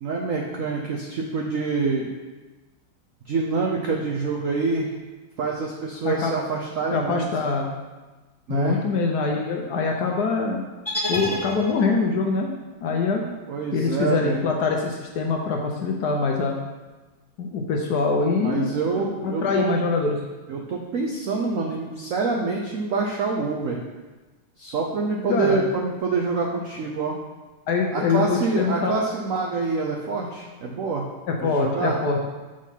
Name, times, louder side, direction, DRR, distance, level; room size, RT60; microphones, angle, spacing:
voice 1, 0.0-2.1 3.3-4.9 5.4-7.3 8.5-8.8 13.5-14.4 18.4-19.8 20.5-23.8 24.6-27.2 27.9-31.0 31.4-32.0, right 4 dB, 80° right, 0 dB, 0.7 m, -26 dB
voice 2, 6.0-6.4 6.9-7.7 8.5-10.6 11.1-12.5 12.8-13.2 13.7-16.6 17.4-18.8 19.2-20.2 25.3-25.6 27.7-29.0 31.3-32.3, left 4 dB, 70° left, 1 dB, 1.0 m, -24 dB
sound 1, 10.9-12.2, left 1 dB, 15° left, 1.7 m, -29 dB
6.3 x 3.8 x 5.6 m, 1.2 s
omnidirectional pair, 2.2 m